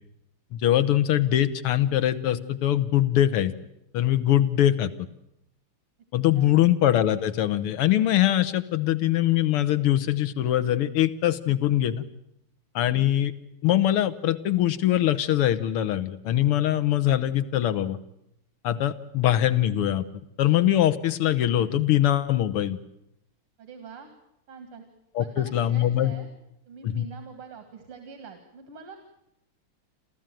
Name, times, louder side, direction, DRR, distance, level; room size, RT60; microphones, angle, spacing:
voice 1, 0.5-3.5 3.9-4.9 6.1-12.0 12.8-13.3 13.6-18.0 18.6-20.1 20.4-22.8 25.2-26.1 26.8-27.1, left 12 dB, 90° left, 12 dB, 2.0 m, -22 dB
voice 2, 6.3-6.7 12.8-13.1 23.6-24.1 24.5-24.8 25.2-26.3 26.7-29.0, right 5 dB, 90° right, 7 dB, 2.9 m, -44 dB
28.0 x 14.5 x 9.1 m, 0.80 s
omnidirectional pair, 2.4 m